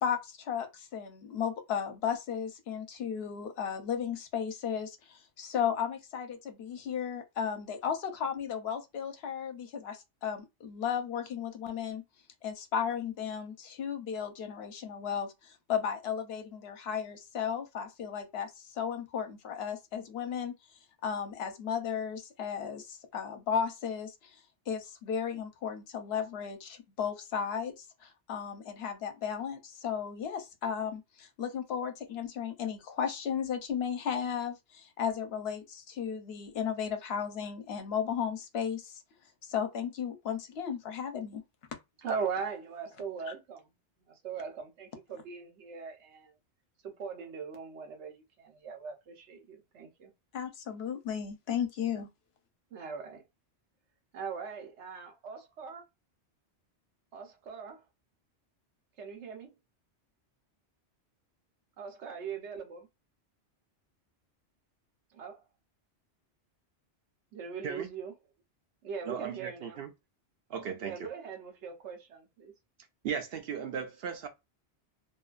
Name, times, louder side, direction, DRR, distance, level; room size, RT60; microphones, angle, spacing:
voice 1, 0.0-12.0 12.4-20.6 21.0-24.4 24.7-39.0 39.4-41.4 50.3-52.1, left 7 dB, 70° left, 0.9 m, -35 dB
voice 2, 42.0-43.7 44.1-46.3 46.8-50.1 52.7-53.2 54.1-55.8 57.1-57.8 59.0-59.5 61.8-62.9 65.1-65.4 67.3-68.1 68.8-69.8 70.8-72.5, right 6 dB, 85° right, 1.0 m, -40 dB
voice 3, 69.0-69.9 70.5-71.1 73.0-74.3, right 7 dB, 65° right, 0.7 m, -37 dB
2.6 x 2.3 x 2.3 m
omnidirectional pair, 1.1 m